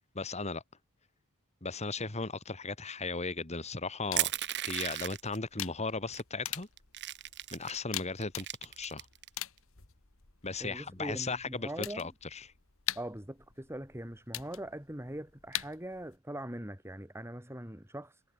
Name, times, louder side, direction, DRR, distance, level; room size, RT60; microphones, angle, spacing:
voice 1, 0.2-0.6 1.6-4.3 4.6-6.7 7.5-9.1 10.4-12.5, left 3 dB, 30° left, 2.0 m, -36 dB
sound 1, 4.1-16.2, left 12 dB, 65° left, 2.0 m, -44 dB
Crushing, 4.2-5.4 6.1-6.2 6.5-7.8 8.2-9.3, right 13 dB, 50° right, 1.5 m, -34 dB
voice 2, 10.6-12.1 13.0-18.2, right 1 dB, 10° right, 3.5 m, -42 dB
head